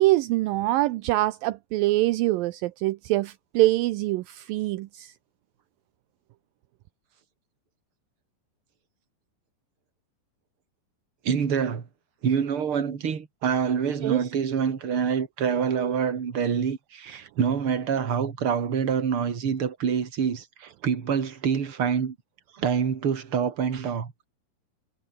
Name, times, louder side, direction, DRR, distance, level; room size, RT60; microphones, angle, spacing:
voice 1, 0.0-5.1 14.0-14.2, right 17 dB, 80° right, 2.2 m, -24 dB
voice 2, 11.2-11.9 12.2-22.2 22.5-24.2, right 7 dB, 35° right, 3.0 m, -26 dB
omnidirectional pair, 4.6 m